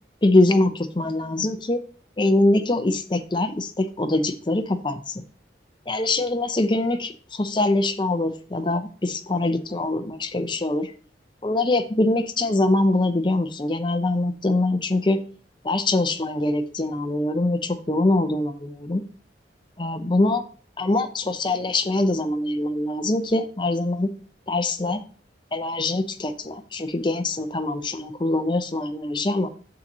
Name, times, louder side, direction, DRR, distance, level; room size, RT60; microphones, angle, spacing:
voice 1, 0.2-1.8 2.2-5.2 5.9-10.9 11.4-15.2 15.6-19.0 19.8-20.4 20.8-24.1 24.5-25.0 25.5-29.5, left 2 dB, 25° left, 8 dB, 0.6 m, -23 dB
6.6 x 5.7 x 3.9 m, 0.41 s
head